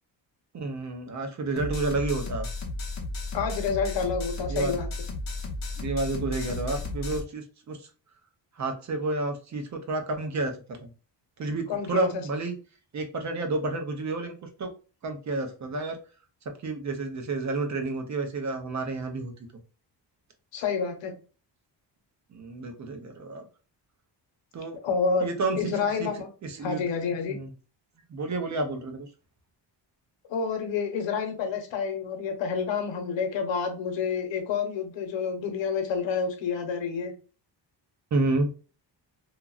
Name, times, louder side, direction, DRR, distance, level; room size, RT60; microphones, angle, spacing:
voice 1, 0.5-2.5 4.5-4.7 5.8-7.9 8.6-10.9 11.4-12.5 12.9-14.7 15.0-16.0 16.6-19.3 22.3-23.4 24.5-24.8 25.2-25.7 26.0-26.1 26.4-26.8 27.3-27.5 28.1-29.1 38.1-38.5, right 2 dB, 40° right, 5 dB, 0.6 m, -30 dB
sound 1, 1.6-7.2, left 2 dB, 40° left, 0.7 m, -34 dB
voice 2, 3.3-4.9 11.7-12.2 20.5-21.1 24.8-26.3 26.6-27.4 30.3-37.1, left 5 dB, 85° left, 5 dB, 0.9 m, -29 dB
2.9 x 2.4 x 2.3 m, 0.36 s
cardioid pair, 135°, 44 cm